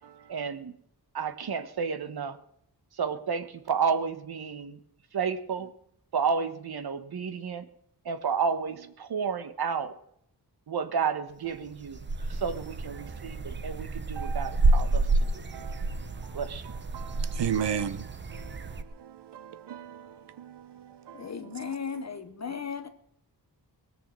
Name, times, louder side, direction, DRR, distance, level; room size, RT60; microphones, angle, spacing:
voice 1, 0.3-0.7 1.1-2.4 2.9-4.8 5.1-5.7 6.1-7.7 8.0-9.9 10.7-12.0 12.3-15.5 16.3-16.6, right 6 dB, 65° right, 1.3 m, -31 dB
sound 1, 11.5-18.8, right 2 dB, 30° right, 0.8 m, -29 dB
voice 2, 13.0-13.4 14.2-14.6 15.2-16.4 16.6-22.0 22.5-22.6, right 8 dB, 85° right, 1.0 m, -37 dB
voice 3, 21.1-22.9, left 7 dB, 40° left, 1.0 m, -36 dB
20.0 x 6.9 x 7.5 m
wide cardioid pair, 165°, 40 cm